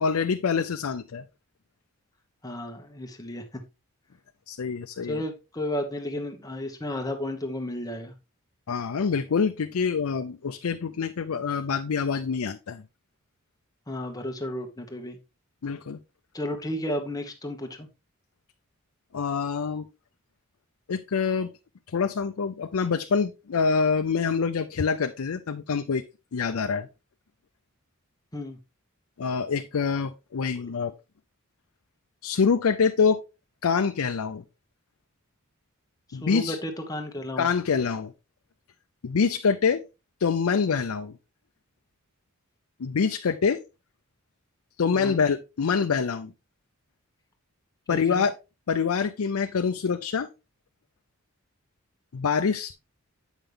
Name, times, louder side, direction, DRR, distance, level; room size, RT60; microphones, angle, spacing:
voice 1, 0.0-1.2 4.5-5.2 8.7-12.8 15.6-16.0 19.1-19.9 20.9-21.5 21.9-26.0 26.3-26.9 29.2-30.9 32.2-33.2 33.6-34.4 36.1-36.6 37.4-38.1 39.0-39.8 40.2-41.2 42.8-43.6 44.8-46.3 47.9-48.3 48.7-50.3 52.1-52.7, left 5 dB, 80° left, 0.5 m, -25 dB
voice 2, 2.4-3.4 5.0-8.1 13.9-15.2 16.3-17.9 28.3-28.6 30.6-30.7 36.2-37.5 44.9-45.2 47.9-48.2, left 1 dB, 15° left, 1.1 m, -33 dB
8.1 x 5.7 x 3.4 m
head